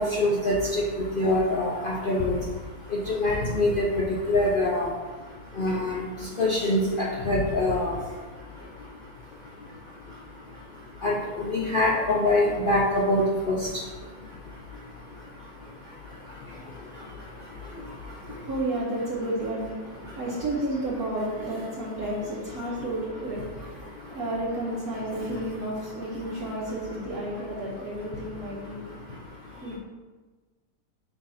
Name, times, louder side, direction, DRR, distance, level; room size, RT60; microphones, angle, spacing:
voice 1, 0.0-18.5 20.0-20.2 22.6-22.8 23.8-24.3 25.1-25.3 26.2-26.5 28.1-29.8, left 1 dB, 60° left, -4 dB, 0.5 m, -28 dB
voice 2, 17.9-28.9 29.6-29.8, right 1 dB, 60° right, -9 dB, 1.6 m, -32 dB
6.9 x 2.7 x 5.6 m, 1.3 s
omnidirectional pair, 1.8 m